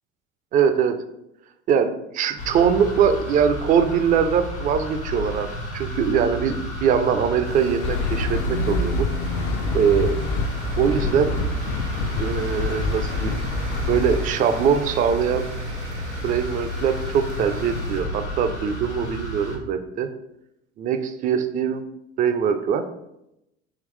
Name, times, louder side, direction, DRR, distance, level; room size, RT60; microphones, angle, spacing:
voice 1, 0.5-1.0 1.7-5.5 5.7-9.1 9.7-10.2 10.8-11.4 12.2-13.3 13.9-15.5 16.2-20.1 20.8-21.8 22.2-22.8, right 7 dB, 25° right, 9 dB, 0.3 m, -22 dB
sound 1, 2.4-19.6, equal, 80° left, 0.9 m, -32 dB
sound 2, 7.4-18.0, right 1 dB, 85° right, 0.8 m, -39 dB
sound 3, 7.8-14.3, left 3 dB, 50° left, 0.5 m, -26 dB
3.8 x 2.9 x 3.1 m, 0.84 s
figure-of-eight pair, 65°, 34 cm